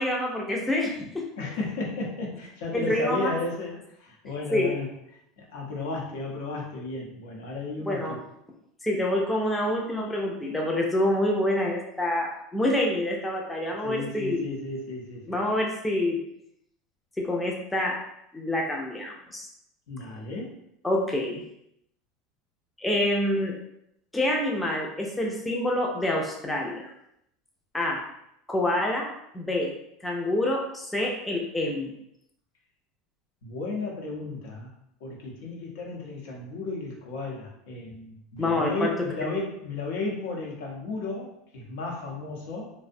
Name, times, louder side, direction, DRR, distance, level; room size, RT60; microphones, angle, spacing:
voice 1, 0.0-1.2 2.7-3.3 4.5-4.7 7.8-8.2 8.8-14.5 15.3-16.2 17.2-18.0 18.3-19.5 20.8-21.4 22.8-23.6 24.1-26.9 27.7-28.0 28.5-29.7 30.0-31.9 38.4-38.9, left 1 dB, 5° left, -1 dB, 0.3 m, -27 dB
voice 2, 1.4-4.9 5.4-8.2 13.8-15.4 19.9-20.6 33.4-34.7 35.0-42.7, left 2 dB, 75° left, -1 dB, 0.7 m, -34 dB
2.5 x 2.0 x 2.5 m, 0.78 s
supercardioid pair, 150°, 0 cm